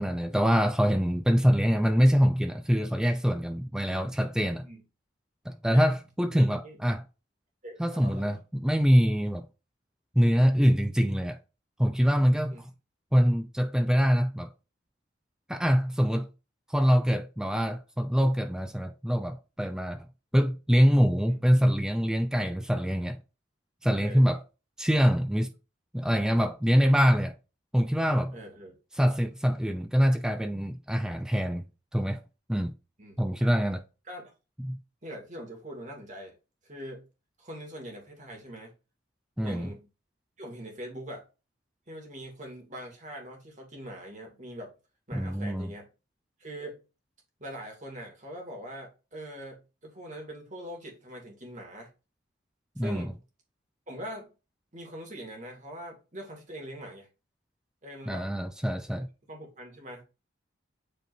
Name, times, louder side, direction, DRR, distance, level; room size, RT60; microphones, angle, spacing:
voice 1, 0.0-4.7 5.5-7.0 7.8-9.5 10.2-11.4 11.8-12.7 13.1-14.5 15.5-16.3 16.7-20.1 20.3-23.2 23.8-24.4 24.8-25.5 25.9-27.4 27.7-28.4 28.9-31.7 31.9-32.2 32.5-32.7 33.2-33.8 34.6-34.8 39.4-39.7 45.1-45.7 52.8-53.1 58.1-59.1, equal, 5° right, 0.3 m, -24 dB
voice 2, 6.3-6.8 7.6-8.4 12.5-12.6 21.3-21.4 24.0-24.2 28.3-28.7 33.0-33.7 34.1-34.3 35.0-36.3 36.6-37.0 37.4-38.7 39.4-39.9 40.4-41.2 41.9-44.7 45.1-45.9 46.4-46.8 47.4-51.9 52.8-53.2 53.9-54.3 54.7-57.1 57.8-58.3 59.2-60.0, equal, 35° right, 2.2 m, -42 dB
8.0 x 4.4 x 2.7 m
head